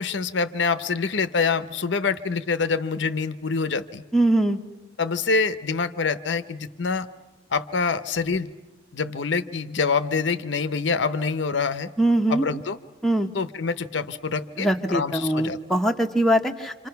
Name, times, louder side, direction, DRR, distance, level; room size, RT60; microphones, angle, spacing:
voice 1, 0.0-4.0 5.0-7.1 7.5-8.5 8.9-11.9 12.3-12.8 13.3-15.6, left 4 dB, 70° left, 12 dB, 0.7 m, -26 dB
voice 2, 4.1-4.6 12.0-12.4 13.0-13.3 14.6-16.9, right 1 dB, ahead, 2 dB, 0.9 m, -22 dB
26.5 x 26.5 x 5.8 m, 1.1 s
head